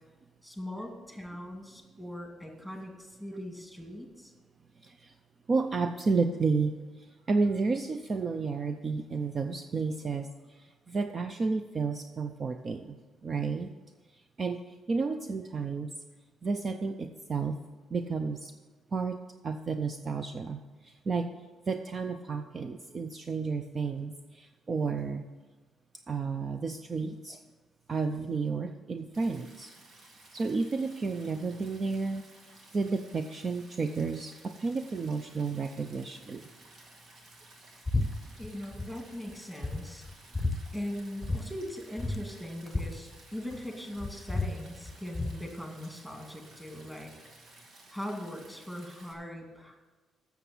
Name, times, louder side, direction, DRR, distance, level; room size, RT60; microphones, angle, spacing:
voice 1, 0.4-4.3 38.4-40.0 40.7-47.1 47.9-49.8, left 1 dB, 5° right, 1 dB, 2.4 m, -40 dB
voice 2, 4.8-5.1 5.5-6.8 7.3-10.3 10.9-13.0 13.2-13.7 14.4-14.6 14.9-15.9 16.4-17.6 17.9-18.5 18.9-21.3 21.7-25.2 26.1-27.4 27.9-29.7 30.3-32.2 32.7-36.4, right 4 dB, 40° right, 8 dB, 0.5 m, -31 dB
Stream, 29.1-49.1, right 2 dB, 60° right, 2.0 m, -55 dB
sound 1, 37.9-38.1 38.3-38.9 39.3-39.4 39.6-40.6 41.2-41.4 41.7-41.8 42.0-43.6 44.0-45.4, left 2 dB, 10° left, 0.8 m, -32 dB
7.7 x 7.0 x 8.3 m, 1.3 s
cardioid pair, 90°, 0 cm